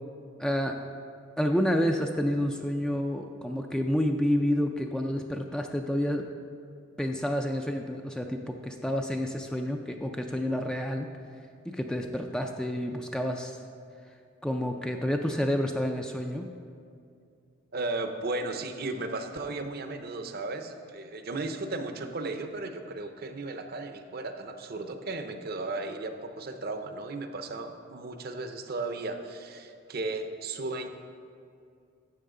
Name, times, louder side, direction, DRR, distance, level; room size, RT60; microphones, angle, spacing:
voice 1, 0.4-0.8 1.4-6.3 7.0-11.1 11.7-13.6 14.4-16.5, equal, 5° left, 3 dB, 0.3 m, -29 dB
voice 2, 17.7-30.9, right 2 dB, 50° right, 7 dB, 0.6 m, -35 dB
12.0 x 7.6 x 3.8 m, 2.4 s
head